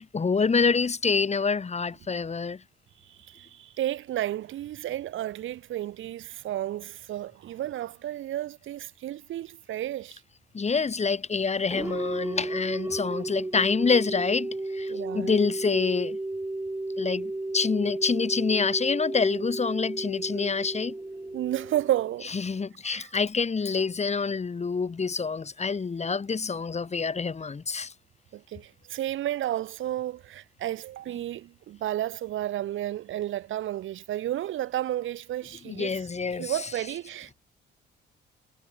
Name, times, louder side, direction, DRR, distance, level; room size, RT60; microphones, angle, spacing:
voice 1, 0.0-2.6 10.5-16.2 17.0-20.9 22.3-27.9 35.7-36.7, left 5 dB, 35° left, 6.5 m, -27 dB
voice 2, 3.1-10.2 14.9-15.3 21.3-22.3 22.8-23.1 28.3-36.0 36.4-37.3, right 13 dB, 80° right, 3.8 m, -32 dB
sound 1, 11.7-22.4, right 2 dB, 15° right, 4.5 m, -33 dB
cardioid pair, 90°, 20 cm